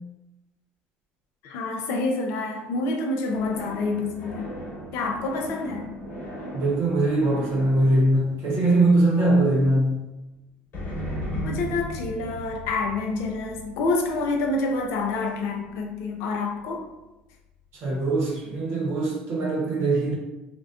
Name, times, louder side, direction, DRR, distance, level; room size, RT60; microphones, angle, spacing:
voice 1, 1.4-4.4 4.9-5.8 11.4-16.8, left 3 dB, 70° left, 2 dB, 0.4 m, -27 dB
sound 1, 3.3-9.3 10.7-16.0, left 1 dB, 50° left, 1.0 m, -37 dB
voice 2, 6.5-10.0 17.7-20.1, right 2 dB, 60° right, -4 dB, 0.8 m, -22 dB
2.4 x 2.1 x 2.4 m, 0.99 s
supercardioid pair, 75°, 5 cm